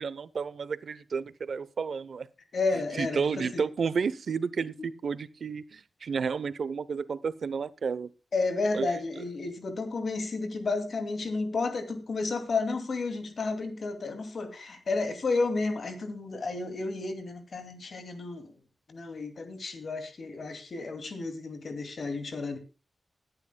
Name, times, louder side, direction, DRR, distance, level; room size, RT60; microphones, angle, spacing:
voice 1, 0.0-2.3 3.0-8.1 8.7-8.9, right 5 dB, 75° right, 17 dB, 0.7 m, -31 dB
voice 2, 2.5-3.6 8.3-18.6 18.9-22.6, left 3 dB, 65° left, 8 dB, 2.4 m, -32 dB
20.5 x 10.5 x 2.2 m, 0.31 s
wide cardioid pair, 95°, 0 cm